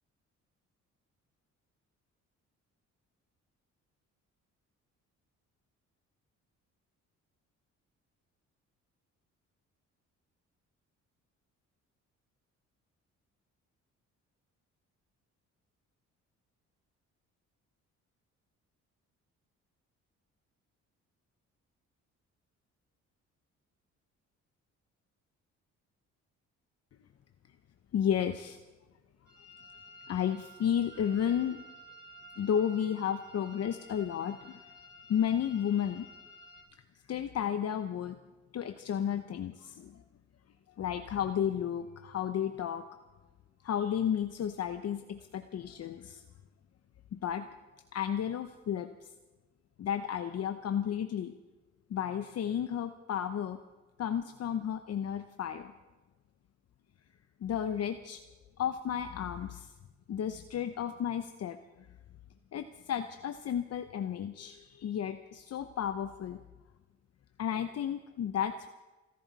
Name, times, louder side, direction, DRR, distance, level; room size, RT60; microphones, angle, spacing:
voice 1, 27.9-28.6 30.1-31.6 32.4-34.6 35.1-36.1 37.1-38.2 38.5-39.9 40.8-42.8 43.6-46.2 47.1-47.5 47.9-49.1 49.8-51.3 51.9-53.6 54.0-55.7 57.4-58.2 58.6-59.7 60.1-61.6 62.5-66.4 67.4-68.7, left 9 dB, 55° left, 9 dB, 0.8 m, -32 dB
sound 1, 29.3-36.6, equal, 35° right, 4.0 m, -53 dB
29.5 x 11.5 x 4.1 m, 1.2 s
cardioid pair, 90°, 30 cm